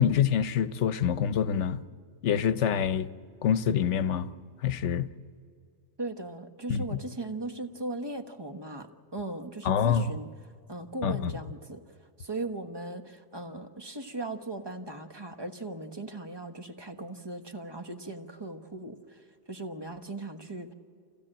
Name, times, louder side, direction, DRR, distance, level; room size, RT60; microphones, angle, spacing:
voice 1, 0.0-1.8 2.2-3.1 3.4-4.3 4.6-5.1 6.7-7.0 9.6-10.1 11.0-11.3, left 8 dB, 80° left, 1.1 m, -26 dB
voice 2, 6.0-10.3 10.7-11.8 12.2-20.7, right 2 dB, 20° right, 1.3 m, -38 dB
27.5 x 16.0 x 8.9 m
omnidirectional pair, 1.2 m